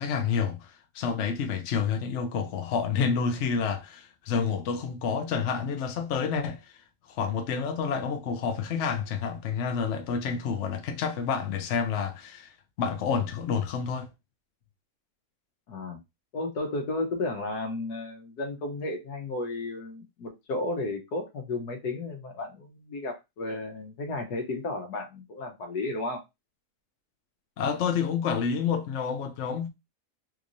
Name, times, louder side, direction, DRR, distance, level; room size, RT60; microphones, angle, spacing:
voice 1, 0.0-6.7 7.1-12.5 12.8-14.1 27.6-29.7, left 6 dB, 60° left, 0.9 m, -29 dB
voice 2, 15.7-16.0 16.3-26.2, left 2 dB, 85° left, 1.5 m, -33 dB
3.5 x 3.1 x 2.6 m
omnidirectional pair, 1.6 m